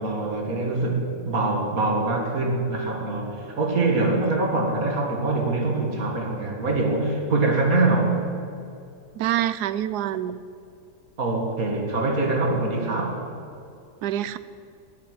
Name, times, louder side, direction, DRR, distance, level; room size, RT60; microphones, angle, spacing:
voice 1, 0.0-8.2 11.2-13.2, right 2 dB, 60° right, 1 dB, 2.4 m, -24 dB
voice 2, 9.2-10.4 14.0-14.4, right 12 dB, 80° right, 15 dB, 1.1 m, -26 dB
12.5 x 7.5 x 9.3 m, 2.5 s
omnidirectional pair, 1.7 m